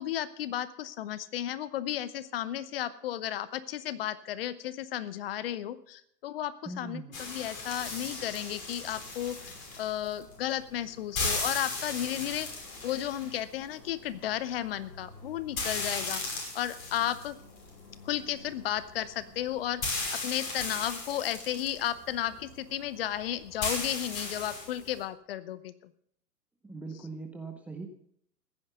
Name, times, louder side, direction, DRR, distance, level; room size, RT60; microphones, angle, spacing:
voice 1, 0.0-12.5 12.8-16.2 16.5-17.3 18.0-25.9, left 12 dB, 35° left, 16 dB, 0.9 m, -34 dB
voice 2, 6.7-7.1 26.6-27.9, right 3 dB, 5° right, 3 dB, 0.6 m, -40 dB
sound 1, 7.1-25.0, left 3 dB, 55° left, 5.9 m, -38 dB
15.5 x 9.7 x 6.7 m, 0.68 s
figure-of-eight pair, 110°, 49 cm